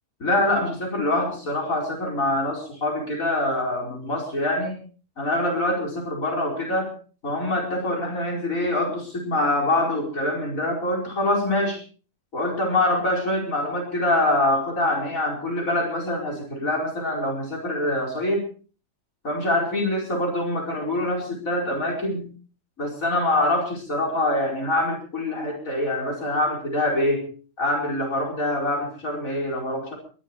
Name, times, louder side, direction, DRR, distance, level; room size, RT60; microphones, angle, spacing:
voice 1, 0.2-4.8 5.2-6.9 7.2-11.8 12.3-18.4 19.2-22.3 22.8-27.3 27.6-29.9, left 1 dB, 80° left, 0 dB, 5.2 m, -25 dB
23.0 x 13.5 x 4.6 m, 0.39 s
omnidirectional pair, 1.4 m